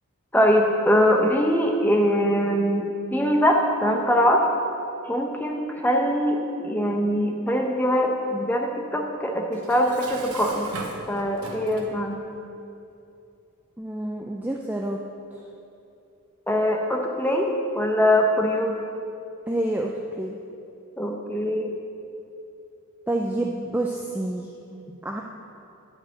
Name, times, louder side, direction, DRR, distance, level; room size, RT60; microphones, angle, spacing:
voice 1, 0.3-2.8 3.1-4.4 5.1-10.7 11.1-12.2 16.5-17.5 17.7-18.8 21.0-21.7, equal, 10° left, 1 dB, 0.8 m, -22 dB
Dishes pots and pans, 9.5-12.0, right 2 dB, 85° right, 1.0 m, -38 dB
voice 2, 13.8-15.0 19.5-19.9 20.2-20.4 23.1-25.2, right 1 dB, 10° right, 0 dB, 0.3 m, -28 dB
10.5 x 4.8 x 7.6 m, 2.7 s
head